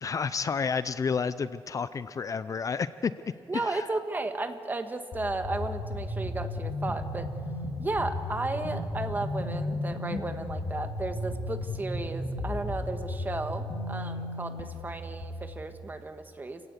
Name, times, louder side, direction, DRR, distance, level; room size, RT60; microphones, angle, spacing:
voice 1, 0.0-3.1 3.6-3.8, left 5 dB, 40° left, 14 dB, 0.5 m, -30 dB
voice 2, 3.5-7.3 7.8-16.6, right 2 dB, 20° right, 7 dB, 1.6 m, -34 dB
sound 1, 5.1-15.2, left 2 dB, 60° left, 4.4 m, -34 dB
29.5 x 17.0 x 8.3 m, 2.7 s
wide cardioid pair, 135°, 9 cm